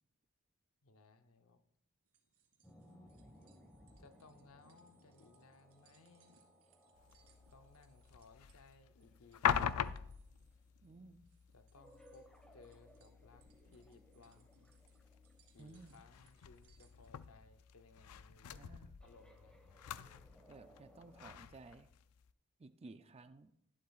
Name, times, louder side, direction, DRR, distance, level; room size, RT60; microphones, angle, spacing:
voice 1, 0.8-1.6 4.0-6.4 7.5-10.0 11.5-13.4 13.7-14.7 15.5-19.5, left 3 dB, 65° left, 8 dB, 0.8 m, -63 dB
sound 1, 2.1-17.1, right 5 dB, 90° right, 2.3 m, -73 dB
sound 2, 2.6-10.1 11.8-17.3 19.0-21.3, equal, 5° left, 1.4 m, -65 dB
sound 3, 7.0-22.3, left 8 dB, 85° left, 0.4 m, -44 dB
voice 2, 10.8-11.3 15.6-16.0 18.5-18.9 20.5-21.9 22.6-23.5, right 3 dB, 25° right, 10 dB, 0.4 m, -56 dB
11.5 x 11.5 x 2.4 m, 0.73 s
head